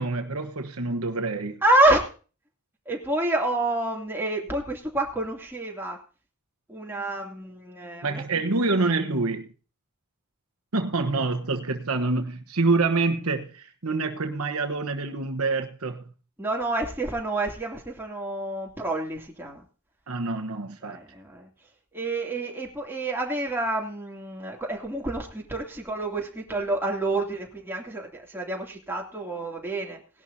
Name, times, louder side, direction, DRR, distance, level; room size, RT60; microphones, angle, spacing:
voice 1, 0.0-1.6 8.0-9.5 10.7-16.0 20.1-21.0, right 3 dB, 75° right, 1.2 m, -26 dB
voice 2, 1.6-2.1 2.9-6.0 6.7-8.2 16.4-19.6 20.8-21.5 21.9-30.0, right 2 dB, 10° right, 2.8 m, -28 dB
18.5 x 11.5 x 2.8 m
head